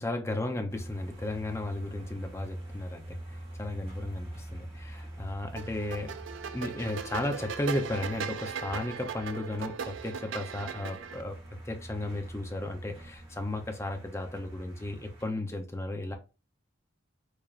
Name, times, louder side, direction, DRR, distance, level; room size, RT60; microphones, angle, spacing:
voice 1, 0.0-6.2 6.5-11.4 11.6-16.1, left 1 dB, 15° left, 0.5 m, -34 dB
sound 1, 0.7-15.2, right 1 dB, 25° right, 1.3 m, -45 dB
sound 2, 5.6-11.2, right 6 dB, 65° right, 0.4 m, -38 dB
4.8 x 2.9 x 2.5 m
head